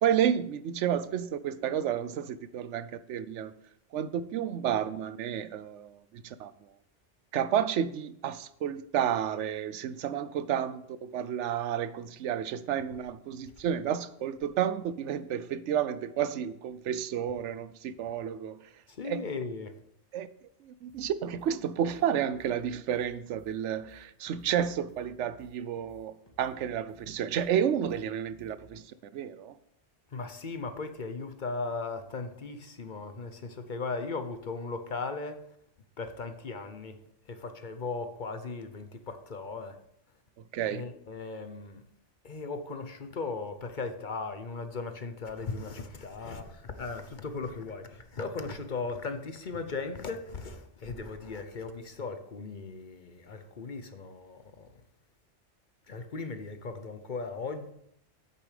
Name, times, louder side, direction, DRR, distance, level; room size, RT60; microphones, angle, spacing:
voice 1, 0.0-3.5 3.9-6.5 7.3-18.6 19.0-19.2 20.1-20.3 20.6-28.8 29.1-29.5 40.5-40.9, right 9 dB, 85° right, 0.9 m, -31 dB
voice 2, 18.9-19.8 30.1-35.4 36.0-37.0 37.3-39.8 40.7-41.8 42.2-54.7 55.9-57.7, left 4 dB, 45° left, 0.9 m, -37 dB
sound 1, 20.9-28.8, left 1 dB, 20° left, 1.9 m, -59 dB
8.5 x 6.9 x 5.0 m
omnidirectional pair, 1.2 m